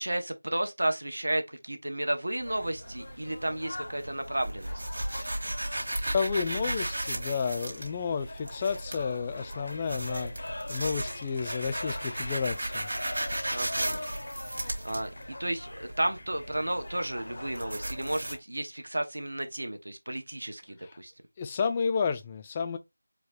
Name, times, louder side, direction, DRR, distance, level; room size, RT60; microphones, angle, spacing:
voice 1, 0.0-4.8 13.5-14.0 14.8-21.1, right 1 dB, 75° right, 1.0 m, -32 dB
sound 1, 2.4-18.3, right 1 dB, 55° right, 1.6 m, -36 dB
sound 2, 2.5-18.4, left 2 dB, 55° left, 0.7 m, -43 dB
voice 2, 6.1-10.3 10.7-12.9 21.4-22.8, left 5 dB, 15° left, 0.3 m, -31 dB
4.5 x 2.1 x 4.1 m
figure-of-eight pair, 170°, 0 cm